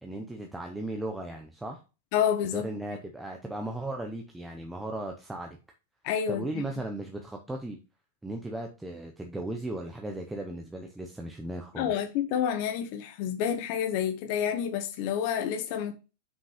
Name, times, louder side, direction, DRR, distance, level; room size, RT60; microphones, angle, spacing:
voice 1, 0.0-1.8 2.5-5.6 6.3-7.8 8.2-12.0, right 1 dB, 5° right, 0.7 m, -36 dB
voice 2, 2.1-2.7 6.0-6.6 11.8-15.9, left 9 dB, 45° left, 1.0 m, -29 dB
6.0 x 5.3 x 4.9 m
supercardioid pair, 165°, 0 cm